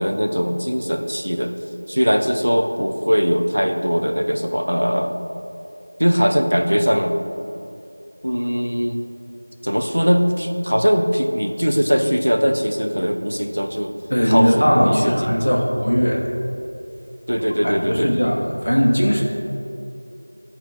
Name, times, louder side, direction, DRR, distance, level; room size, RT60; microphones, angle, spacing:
voice 1, 0.0-1.6 1.9-5.1 6.0-7.1 8.2-9.0 9.6-13.9 14.3-15.5 17.3-18.2, equal, 85° right, 4 dB, 0.7 m, -20 dB
voice 2, 14.1-16.3 17.3-19.2, equal, 25° left, -1 dB, 0.6 m, -19 dB
12.5 x 4.4 x 3.9 m, 2.7 s
figure-of-eight pair, 180°, 0 cm